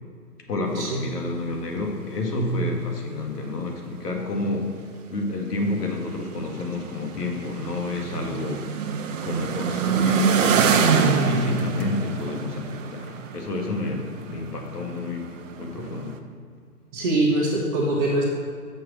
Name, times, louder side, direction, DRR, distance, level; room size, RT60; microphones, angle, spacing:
voice 1, 0.5-4.7 5.1-8.6 9.2-15.3 15.6-16.2, left 2 dB, 80° left, 1 dB, 1.8 m, -29 dB
sound 1, 3.1-3.2 3.4-3.5 4.7-4.8 5.4-5.5 5.6-14.6 15.1-16.1, right 5 dB, 55° right, 0.7 m, -25 dB
voice 2, 16.9-18.2, right 2 dB, 30° right, -4 dB, 1.0 m, -23 dB
6.5 x 5.5 x 6.2 m, 2.1 s
hypercardioid pair, 150°, 47 cm